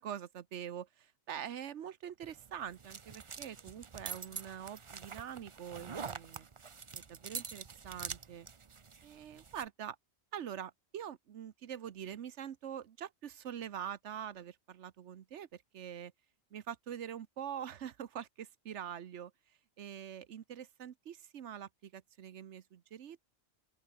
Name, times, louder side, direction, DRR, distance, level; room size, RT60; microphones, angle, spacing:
voice 1, 0.0-6.5 6.9-8.5 9.0-10.0 10.3-16.1 16.5-19.3 19.8-23.3, right 9 dB, 85° right, 1.2 m, -44 dB
sound 1, 2.2-9.7, right 5 dB, 30° right, 0.7 m, -46 dB
open air
omnidirectional pair, 1.2 m